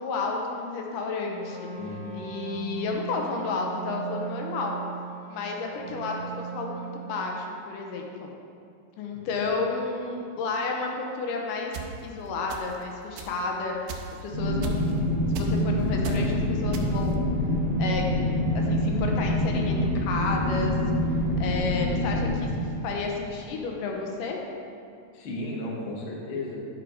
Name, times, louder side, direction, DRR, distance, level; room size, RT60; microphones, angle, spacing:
voice 1, 0.0-1.7 2.1-4.8 5.3-8.3 9.0-11.7 12.0-17.3 17.8-18.1 18.5-20.8 21.4-24.4, left 3 dB, 85° left, 1 dB, 2.4 m, -31 dB
Wind instrument woodwind instrument, 1.2-7.2, right 8 dB, 65° right, 2.8 m, -39 dB
voice 2, 1.7-2.2 5.8-6.0 9.1-9.5 25.1-26.6, left 2 dB, 55° left, -3 dB, 1.5 m, -35 dB
sound 1, 11.7-11.9 12.5-12.8 13.2-13.3 13.9-14.2 14.6-15.0 15.3-15.6 16.0-16.3 16.7-17.1, right 7 dB, 80° right, 2.2 m, -35 dB
sound 2, 14.3-22.3, left 1 dB, 40° right, 2.2 m, -26 dB
10.0 x 4.9 x 4.7 m, 2.4 s
omnidirectional pair, 3.8 m